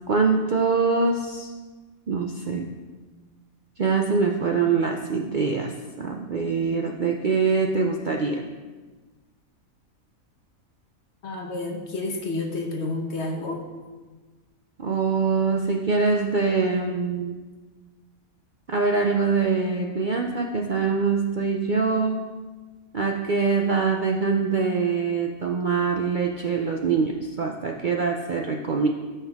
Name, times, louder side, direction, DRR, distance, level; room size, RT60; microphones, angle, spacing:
voice 1, 0.1-1.5 2.1-2.7 3.8-8.4 14.8-17.4 18.7-22.2 22.9-28.9, right 4 dB, 55° right, 1 dB, 0.6 m, -24 dB
voice 2, 11.2-13.7, left 2 dB, 55° left, 2 dB, 1.2 m, -30 dB
13.5 x 5.6 x 3.5 m, 1.3 s
omnidirectional pair, 1.5 m